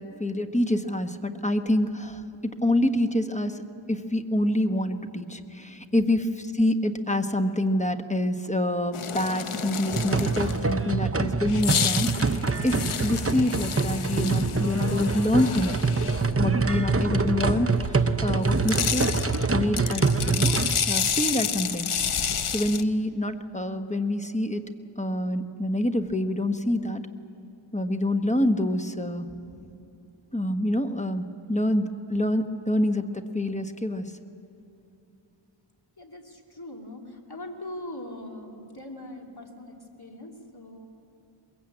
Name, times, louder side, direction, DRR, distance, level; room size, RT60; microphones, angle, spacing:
voice 1, 0.0-3.5 3.9-6.3 6.5-15.7 16.4-19.2 19.5-20.5 20.9-21.9 22.5-24.6 25.0-27.0 27.7-29.3 30.3-34.0, left 1 dB, 15° left, 7 dB, 1.2 m, -26 dB
sound 1, 8.9-10.7 11.5-16.3 18.4-22.8, left 7 dB, 80° left, 0.8 m, -30 dB
sound 2, 9.9-20.8, right 4 dB, 30° right, 0.8 m, -25 dB
voice 2, 36.0-40.8, left 1 dB, 50° left, 1 dB, 2.9 m, -41 dB
22.5 x 22.0 x 8.7 m, 2.8 s
wide cardioid pair, 45°, 50 cm